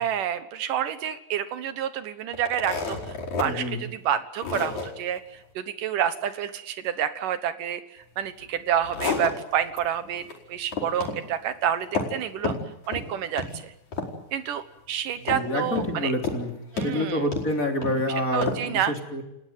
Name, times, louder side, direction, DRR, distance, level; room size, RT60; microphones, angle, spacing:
voice 1, 0.0-3.0 3.4-5.2 5.6-7.8 8.2-12.5 12.9-13.7 14.3-16.1 16.7-17.3 18.3-18.9, right 9 dB, 75° right, 12 dB, 2.8 m, -28 dB
sound 1, 2.3-3.5 3.9-4.0 4.4-4.9 8.5-9.8 10.1-10.4 10.7-11.2 11.5-12.2 12.4-13.1 13.4-13.6 13.9-14.4 15.3-16.0 16.2-16.4 16.8-18.0 18.4-18.6, left 4 dB, 55° left, 6.1 m, -30 dB
voice 2, 3.4-3.9 15.2-16.5 16.8-19.2, left 1 dB, 25° left, 4 dB, 3.5 m, -28 dB
29.5 x 16.5 x 9.4 m, 0.86 s
omnidirectional pair, 3.9 m